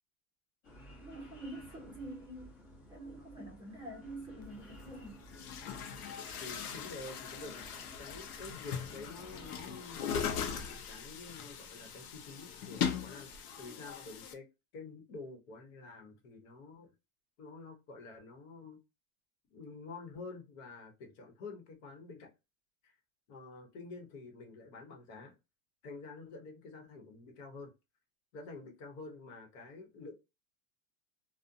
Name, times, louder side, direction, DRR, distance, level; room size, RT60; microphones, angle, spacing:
sound 1, 0.6-9.5, equal, 30° left, 1.0 m, -54 dB
voice 1, 1.0-2.5 2.9-5.2, right 1 dB, 10° right, 0.6 m, -46 dB
Chatter / Gurgling / Tap, 4.4-4.5 5.2-14.3, left 7 dB, 85° left, 0.7 m, -40 dB
voice 2, 6.4-7.7 8.0-14.5 14.7-16.9 17.4-18.8 19.5-22.3 22.8-23.0 23.3-25.4 25.8-27.7 28.3-30.1, left 3 dB, 60° left, 1.1 m, -48 dB
2.5 x 2.2 x 2.6 m
supercardioid pair, 145°, 43 cm